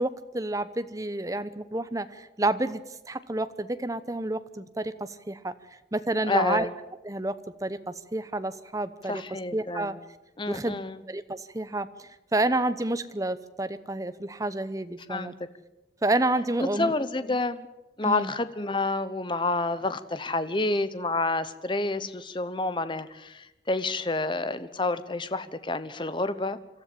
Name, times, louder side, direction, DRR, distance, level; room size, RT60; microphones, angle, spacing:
voice 1, 0.0-2.8 3.1-5.5 5.9-6.7 7.0-7.4 7.6-9.2 9.5-9.9 10.5-10.8 11.1-11.9 12.3-15.3 16.0-16.9 18.0-18.3, right 2 dB, 20° right, 12 dB, 0.9 m, -29 dB
voice 2, 6.3-6.7 9.0-10.0 10.4-11.0 15.1-15.3 16.6-17.6 18.0-26.6, left 2 dB, 25° left, 12 dB, 0.9 m, -29 dB
26.0 x 13.5 x 8.6 m, 1.0 s
head